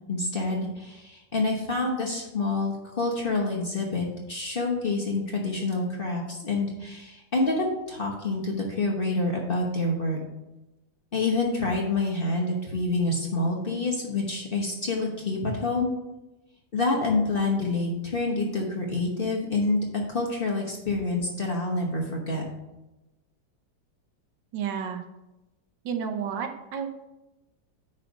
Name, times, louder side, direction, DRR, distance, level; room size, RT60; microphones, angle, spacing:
voice 1, 0.1-10.2 11.1-15.9 16.7-22.4, left 2 dB, 35° left, -1 dB, 1.1 m, -27 dB
voice 2, 24.5-25.0 25.8-26.9, right 7 dB, 85° right, 5 dB, 1.5 m, -31 dB
9.8 x 3.3 x 5.3 m, 0.99 s
omnidirectional pair, 2.0 m